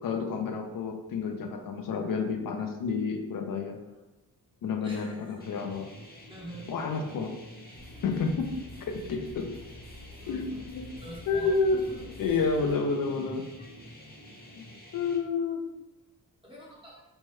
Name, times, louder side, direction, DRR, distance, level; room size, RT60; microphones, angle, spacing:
voice 1, 0.0-3.8 4.6-5.9 6.7-7.4 8.0-8.5 8.9-9.5 10.3-11.0 11.3-11.8 12.2-13.4 14.6-14.7 14.9-15.6, left 4 dB, 60° left, 5 dB, 0.5 m, -30 dB
voice 2, 4.8-5.4 6.3-6.7 8.1-8.3 10.2-10.6 11.0-12.4 13.0-13.3 16.4-17.0, equal, 15° right, -6 dB, 0.7 m, -46 dB
sound 1, 5.4-15.2, equal, 25° left, 0.8 m, -49 dB
sound 2, 7.7-12.7, left 2 dB, 45° right, 1.1 m, -48 dB
3.2 x 2.1 x 3.1 m, 1.0 s
cardioid pair, 90°, 37 cm